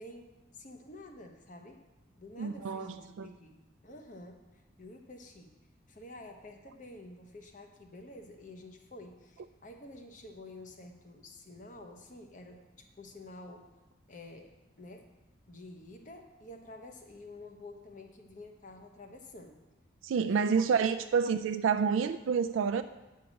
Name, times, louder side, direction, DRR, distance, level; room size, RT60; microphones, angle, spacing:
voice 1, 0.0-1.8 2.2-5.5 5.9-13.7 14.1-15.1 15.5-19.6 20.2-20.6 20.9-21.1, left 1 dB, 40° left, 0.9 m, -50 dB
voice 2, 2.4-3.3 20.0-22.8, right 6 dB, 80° right, 0.3 m, -28 dB
8.9 x 5.7 x 6.3 m
head